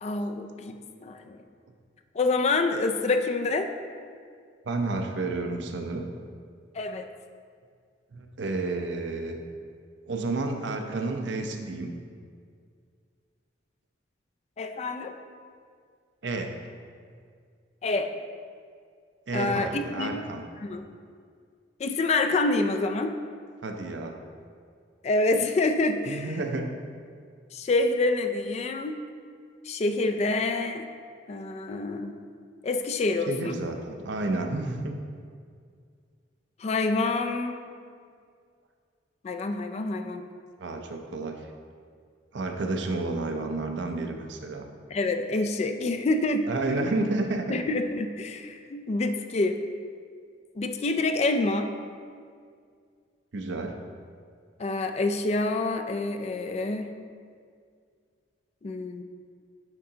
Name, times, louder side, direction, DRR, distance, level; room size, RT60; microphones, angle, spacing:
voice 1, 0.0-1.4 2.1-3.7 6.7-7.1 14.6-15.1 17.8-18.1 19.3-20.2 20.6-20.8 21.8-23.1 25.0-26.3 27.5-29.0 29.6-30.9 31.3-32.2 32.6-33.6 36.6-37.6 39.2-40.2 44.9-46.5 47.5-49.6 50.6-51.7 54.6-56.9 58.6-59.0, left 2 dB, 35° left, 6 dB, 0.3 m, -27 dB
voice 2, 4.7-6.1 8.1-9.4 10.1-11.9 16.2-16.5 19.3-20.4 23.6-24.2 26.1-26.8 33.3-35.0 40.6-41.4 42.3-44.7 46.5-47.6 53.3-53.8, right 2 dB, 70° right, 4 dB, 0.5 m, -30 dB
9.7 x 3.7 x 2.7 m, 2.1 s
head